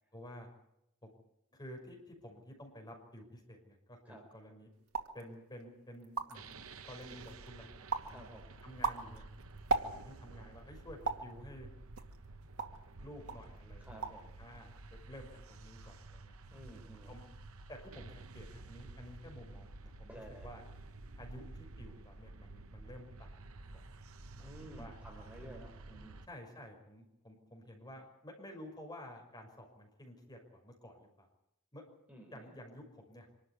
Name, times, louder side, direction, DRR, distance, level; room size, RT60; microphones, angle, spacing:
voice 1, 0.1-0.5 1.0-1.1 1.5-4.7 5.1-6.5 6.8-8.2 8.6-9.3 10.0-11.7 13.0-14.0 14.4-14.8 15.1-16.4 17.1-17.2 17.7-20.6 21.2-23.3 23.7-24.0 24.4-25.0 25.4-25.5 26.2-31.3 31.7-31.8 32.3-33.3, equal, 20° left, 1 dB, 5.9 m, -51 dB
sound 1, 4.9-5.2 5.7-5.8 6.0-6.5 7.0-7.5 7.9-8.2 8.6-10.3 11.1-11.3 12.0-12.9 13.3-13.5 13.8-14.3 14.6-15.1, right 3 dB, 85° right, 2.3 m, -37 dB
sound 2, 6.3-26.3, right 2 dB, 70° right, 1.1 m, -51 dB
voice 2, 8.1-8.5 9.8-10.0 13.8-14.4 16.5-17.2 20.1-20.6 24.4-26.3 32.1-32.6, equal, 5° right, 1 dB, 3.9 m, -53 dB
25.5 x 13.0 x 9.8 m, 0.83 s
head